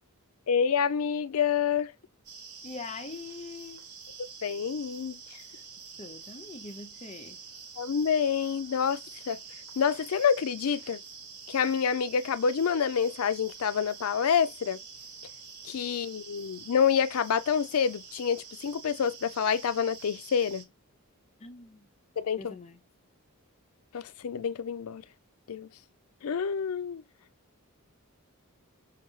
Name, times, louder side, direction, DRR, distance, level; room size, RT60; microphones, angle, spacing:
voice 1, 0.5-1.9 4.4-5.2 7.8-9.0 9.3-9.4 9.8-11.0 11.5-14.8 15.6-20.6 22.2-22.5 23.9-25.0 25.5-25.7 26.2-27.0, left 7 dB, 75° left, 0.4 m, -27 dB
sound 1, 2.2-20.6, right 5 dB, 85° right, 1.3 m, -47 dB
voice 2, 2.6-3.9 6.0-7.4 21.4-21.9 22.4-22.8, left 4 dB, 30° left, 0.6 m, -43 dB
5.8 x 2.0 x 3.1 m
head